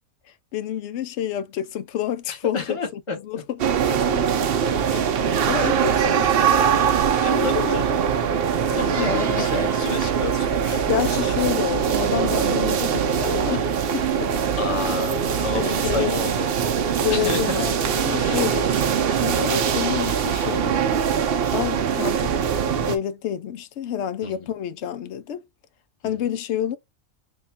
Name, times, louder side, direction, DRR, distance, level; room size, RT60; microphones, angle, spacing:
voice 1, 0.5-3.6 4.1-4.2 5.5-7.8 9.0-9.4 10.9-13.7 13.9-14.3 15.5-16.2 17.0-18.7 19.1-21.0 21.5-22.4 22.8-25.4 26.0-26.8, left 10 dB, 65° left, 0.8 m, -29 dB
voice 2, 2.3-3.2 3.9-4.0 4.9-5.0 5.6-6.1 7.2-7.9 8.7-11.2 14.5-16.7 17.1-17.7 18.1-18.5 24.2-24.3, left 4 dB, 25° left, 1.0 m, -31 dB
sound 1, 3.6-23.0, right 7 dB, 60° right, 0.7 m, -22 dB
3.6 x 2.2 x 4.1 m
omnidirectional pair, 1.4 m